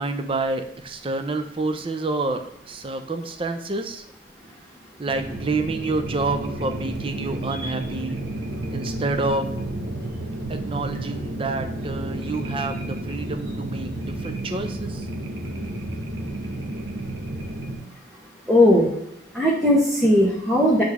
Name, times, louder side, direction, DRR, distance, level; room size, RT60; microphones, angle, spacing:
voice 1, 0.0-4.0 5.0-8.2 8.7-9.5 10.5-15.0, right 3 dB, 30° right, 8 dB, 0.5 m, -28 dB
sound 1, 5.1-17.8, right 1 dB, 70° right, 1.1 m, -31 dB
voice 2, 18.5-18.9 19.3-20.8, left 1 dB, ahead, -7 dB, 1.1 m, -18 dB
8.3 x 3.4 x 3.5 m, 0.79 s
head